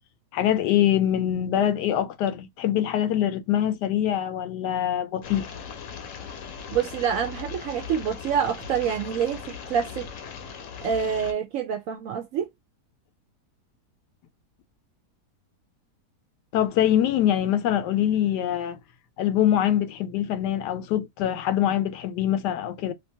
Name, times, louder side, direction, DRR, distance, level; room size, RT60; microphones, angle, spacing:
voice 1, 0.3-5.5 16.5-18.8 19.2-22.9, left 11 dB, 85° left, 1.2 m, -24 dB
sound 1, 5.2-11.3, left 7 dB, 60° left, 0.9 m, -39 dB
voice 2, 6.7-10.1 10.8-12.5, right 8 dB, 70° right, 0.8 m, -27 dB
2.9 x 2.5 x 2.6 m
omnidirectional pair, 1.7 m